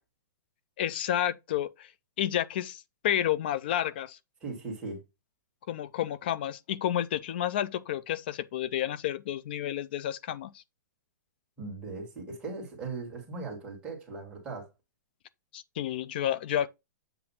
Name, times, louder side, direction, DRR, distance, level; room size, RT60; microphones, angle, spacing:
voice 1, 0.8-1.9 2.2-4.2 5.7-10.6 15.5-16.7, left 11 dB, 30° left, 0.4 m, -30 dB
voice 2, 4.4-5.0 11.6-14.7, right 3 dB, 10° right, 1.8 m, -38 dB
7.7 x 2.6 x 5.5 m
hypercardioid pair, 180°, 10 cm